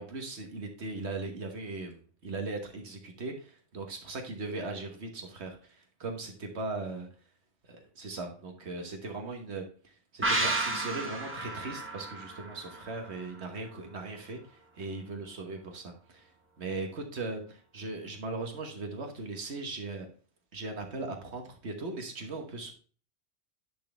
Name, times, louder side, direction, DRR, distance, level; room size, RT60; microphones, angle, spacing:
voice 1, 0.0-7.1 7.6-16.3 16.6-20.1 20.5-22.7, right 3 dB, 65° right, 4 dB, 1.4 m, -39 dB
sound 1, 10.2-13.7 14.0-14.1, right 2 dB, 10° right, 1.1 m, -33 dB
10.0 x 4.1 x 3.3 m, 0.41 s
omnidirectional pair, 1.2 m